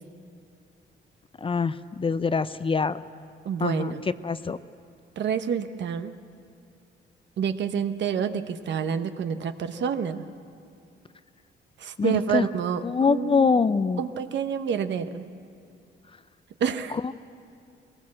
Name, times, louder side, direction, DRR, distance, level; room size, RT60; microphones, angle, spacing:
voice 1, 1.4-3.0 3.6-3.9 4.2-4.6 12.0-12.5 12.8-14.0 17.0-17.1, left 5 dB, 25° left, 14 dB, 0.5 m, -24 dB
voice 2, 3.4-4.0 5.2-6.1 7.4-10.2 11.8-13.5 14.0-15.3 16.6-17.1, right 7 dB, 65° right, 9 dB, 1.0 m, -28 dB
21.5 x 18.0 x 7.6 m, 2.4 s
cardioid pair, 90°, 20 cm